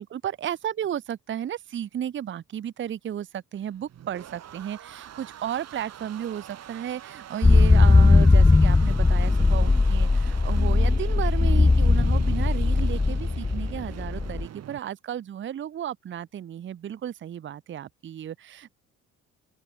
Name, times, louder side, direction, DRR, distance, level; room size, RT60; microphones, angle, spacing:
voice 1, 0.0-18.8, right 10 dB, 40° right, 0.8 m, -34 dB
sound 1, 3.6-14.8, right 10 dB, 55° right, 3.2 m, -45 dB
sound 2, 7.4-14.5, left 3 dB, 10° left, 0.5 m, -19 dB
open air
cardioid pair, 115°, 30 cm